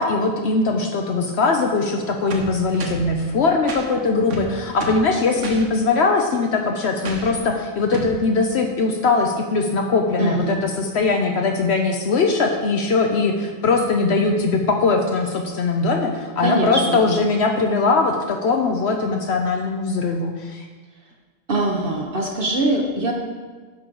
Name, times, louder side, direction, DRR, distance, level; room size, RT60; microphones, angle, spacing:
voice 1, 0.0-20.7, left 3 dB, 65° left, 3 dB, 0.9 m, -21 dB
sound 1, 2.3-3.1 3.7-3.9 4.3-5.1 5.4-5.7 7.0-7.4 7.9-8.2, right 4 dB, 80° right, 1.3 m, -31 dB
voice 2, 10.2-10.6 16.4-17.2 21.5-23.1, right 2 dB, 50° right, 0 dB, 1.1 m, -22 dB
10.0 x 6.2 x 3.8 m, 1.4 s
omnidirectional pair, 1.2 m